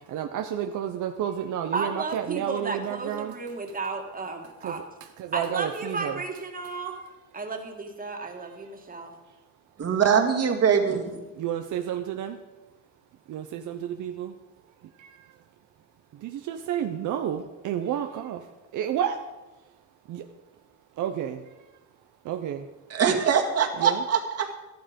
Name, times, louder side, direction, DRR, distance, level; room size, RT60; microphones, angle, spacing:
voice 1, 0.1-3.3 4.6-4.8 5.2-6.2 11.4-12.4 13.3-14.3 15.0-15.1 16.2-18.4 18.7-19.2 20.1-20.2 21.0-21.4 22.2-22.6 23.8-24.0, right 10 dB, 80° right, 6 dB, 0.8 m, -30 dB
voice 2, 1.7-4.8 5.3-7.0 7.3-9.1, right 4 dB, 30° right, 3 dB, 2.0 m, -33 dB
voice 3, 9.8-11.2 22.9-24.5, right 7 dB, 55° right, 3 dB, 2.0 m, -22 dB
12.5 x 11.5 x 5.2 m, 1.1 s
cardioid pair, 90°, 30 cm